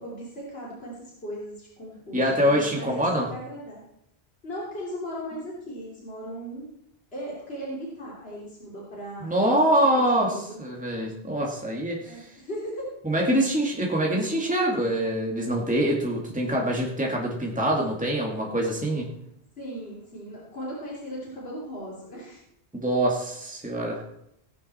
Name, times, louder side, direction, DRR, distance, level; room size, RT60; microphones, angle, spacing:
voice 1, 0.0-3.8 4.4-6.7 7.1-9.5 9.9-10.6 12.0-12.9 19.6-22.4, equal, 65° left, -5 dB, 3.5 m, -37 dB
voice 2, 2.1-3.3 9.2-12.3 13.0-19.1 22.7-24.0, right 1 dB, 5° right, -1 dB, 2.0 m, -25 dB
17.5 x 9.4 x 4.3 m, 0.78 s
omnidirectional pair, 1.1 m